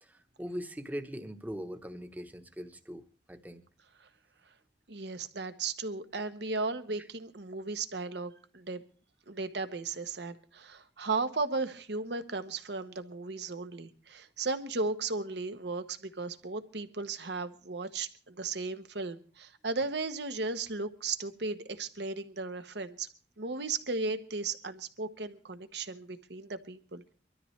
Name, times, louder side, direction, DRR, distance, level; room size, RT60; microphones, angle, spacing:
voice 1, 0.0-3.0 3.3-3.6, equal, 10° right, 9 dB, 1.0 m, -41 dB
voice 2, 4.9-8.8 9.3-23.1 23.4-27.1, right 3 dB, 70° right, 10 dB, 1.1 m, -35 dB
24.0 x 13.0 x 3.2 m, 0.38 s
head